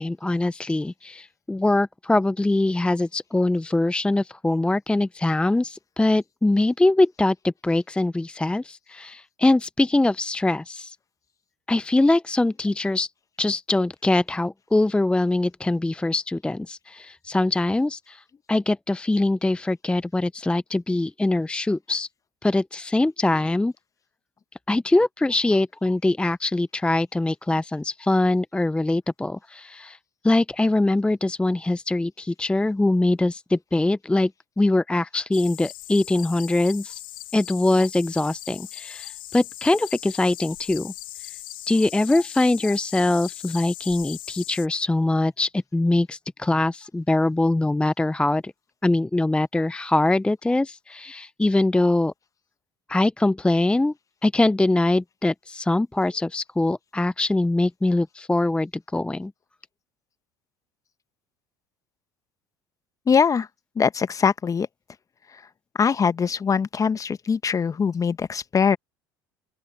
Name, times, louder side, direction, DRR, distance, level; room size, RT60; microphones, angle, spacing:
voice 1, 0.0-11.0 11.7-13.1 13.4-22.1 22.4-23.7 24.7-30.0 30.2-34.3 34.6-37.0 37.3-40.9 41.2-41.3 41.7-48.5 48.8-52.1 52.9-53.9 54.2-59.3, left 2 dB, 10° left, 0.6 m, -23 dB
sound 1, 35.3-44.7, left 16 dB, 80° left, 1.1 m, -39 dB
voice 2, 63.1-63.5 63.8-64.7 65.8-68.8, left 6 dB, 30° left, 1.2 m, -22 dB
open air
hypercardioid pair, 70°, 11 cm